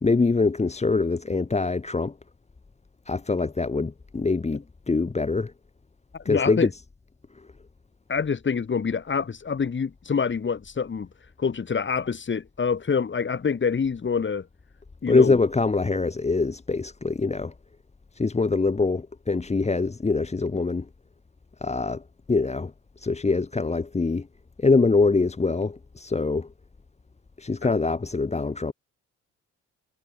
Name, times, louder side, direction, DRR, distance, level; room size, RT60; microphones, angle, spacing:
voice 1, 0.0-2.1 3.1-5.5 6.3-6.7 15.1-17.5 18.2-20.9 21.6-22.0 22.3-22.7 23.0-24.3 24.6-26.5 27.4-28.7, left 3 dB, 20° left, 1.9 m, -24 dB
voice 2, 6.1-6.7 8.1-11.1 11.4-14.5 15.0-15.4, left 6 dB, 40° left, 6.2 m, -26 dB
cardioid pair, 90°, 30 cm